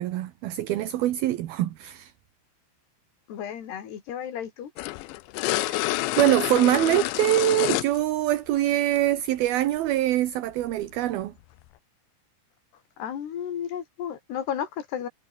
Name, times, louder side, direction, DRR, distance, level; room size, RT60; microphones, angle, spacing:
voice 1, 0.0-2.1 5.5-11.3, right 14 dB, 70° right, 2.8 m, -24 dB
voice 2, 3.3-4.7 13.0-15.1, left 9 dB, 70° left, 5.0 m, -33 dB
sound 1, 4.8-8.0 9.0-9.1 10.7-10.9, left 19 dB, 90° left, 3.1 m, -28 dB
omnidirectional pair, 5.0 m